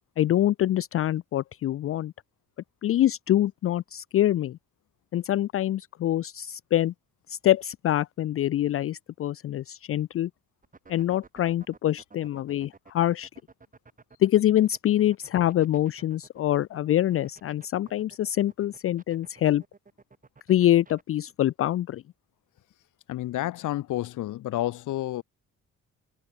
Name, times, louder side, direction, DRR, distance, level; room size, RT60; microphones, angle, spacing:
voice 1, 0.2-2.1 2.8-4.6 5.1-6.9 7.3-10.3 10.9-13.3 14.2-19.6 20.5-22.0, left 12 dB, 50° left, 0.4 m, -25 dB
sound 1, 10.6-21.0, right 4 dB, 25° right, 6.1 m, -53 dB
voice 2, 23.1-25.2, left 15 dB, 85° left, 2.6 m, -30 dB
cardioid pair, 90°, 30 cm